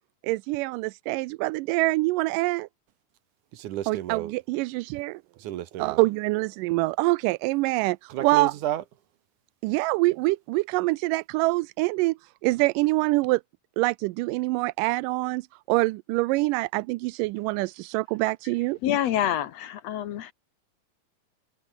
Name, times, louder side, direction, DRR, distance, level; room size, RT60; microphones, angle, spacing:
voice 1, 0.2-2.7 3.9-5.2 5.8-8.5 9.6-13.4 13.8-18.8, right 22 dB, 90° right, 2.2 m, -25 dB
voice 2, 3.5-4.3 5.4-6.1 8.1-8.8, right 12 dB, 70° right, 2.6 m, -32 dB
voice 3, 18.8-20.3, left 11 dB, 65° left, 2.0 m, -27 dB
omnidirectional pair, 3.7 m